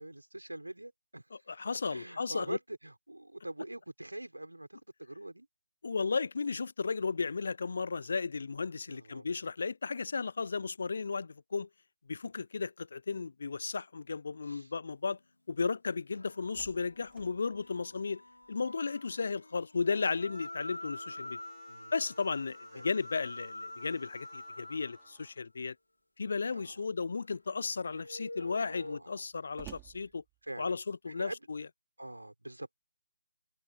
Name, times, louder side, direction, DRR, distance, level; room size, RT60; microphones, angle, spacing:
voice 1, 0.0-1.3 1.9-5.5 8.9-9.3 14.5-14.7 18.5-18.7 21.7-22.0 22.7-22.9 26.5-26.9 28.0-29.2 30.4-30.8 31.1-31.4 32.0-32.7, right 1 dB, 85° right, 5.8 m, -44 dB
voice 2, 1.3-2.6 5.8-11.7 12.1-15.2 15.5-18.2 18.5-21.4 21.9-25.7 26.2-30.2 30.6-31.7, left 4 dB, 55° left, 0.6 m, -34 dB
sound 1, 16.1-25.3 27.8-29.0, left 1 dB, 80° left, 3.1 m, -47 dB
Slam, 16.4-18.9 19.3-19.4 19.8-25.5 26.4-26.9 27.4-27.5 27.8-30.9, right 25 dB, 15° right, 5.9 m, -60 dB
figure-of-eight pair, 145°, 0 cm